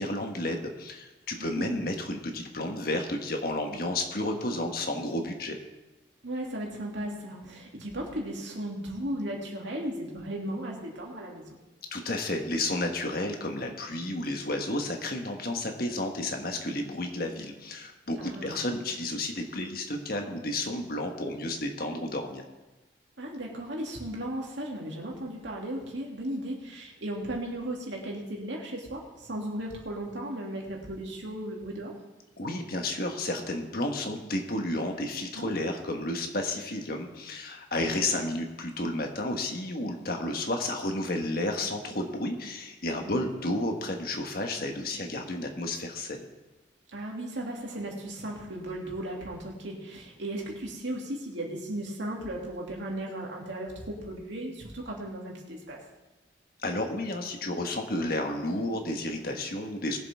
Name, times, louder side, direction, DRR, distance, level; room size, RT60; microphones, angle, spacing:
voice 1, 0.0-5.6 11.9-22.4 32.4-46.3 56.6-60.0, left 1 dB, 50° left, 3 dB, 1.4 m, -32 dB
voice 2, 1.4-1.8 6.2-11.5 18.2-18.7 23.2-31.9 35.3-35.5 37.8-38.1 43.1-43.3 46.9-55.8, right 1 dB, 75° right, -2 dB, 2.7 m, -36 dB
20.5 x 7.6 x 3.6 m, 1.1 s
head